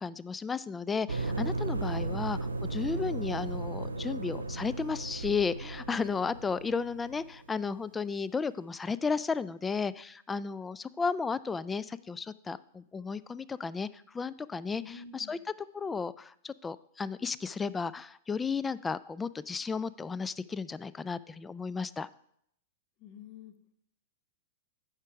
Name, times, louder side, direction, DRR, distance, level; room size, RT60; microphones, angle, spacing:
voice 1, 0.0-13.9 14.1-15.4 15.7-22.1, left 5 dB, 15° left, 18 dB, 0.3 m, -34 dB
sound 1, 1.1-7.6, right 2 dB, 90° right, 0.7 m, -35 dB
voice 2, 14.8-15.4 23.0-23.5, left 6 dB, 45° left, 8 dB, 1.1 m, -48 dB
9.6 x 5.1 x 4.7 m, 0.71 s
figure-of-eight pair, 100°, 0 cm